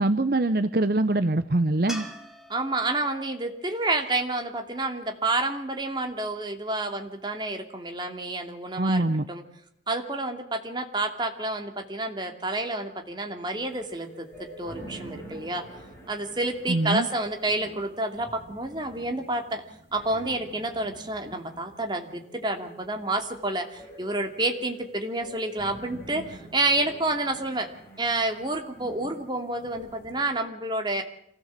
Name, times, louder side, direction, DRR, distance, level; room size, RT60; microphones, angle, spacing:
voice 1, 0.0-2.1 8.8-9.2 16.7-17.1, right 2 dB, 55° right, 11 dB, 0.8 m, -23 dB
sound 1, 1.9-5.1 8.4-8.5, equal, ahead, 2.2 m, -44 dB
voice 2, 2.5-9.4 9.9-15.6 16.1-19.6 19.9-27.7 28.0-31.0, right 2 dB, 25° right, 4 dB, 2.6 m, -29 dB
sound 2, 13.6-30.2, right 1 dB, 15° left, 7.1 m, -47 dB
26.5 x 16.0 x 7.5 m, 0.71 s
head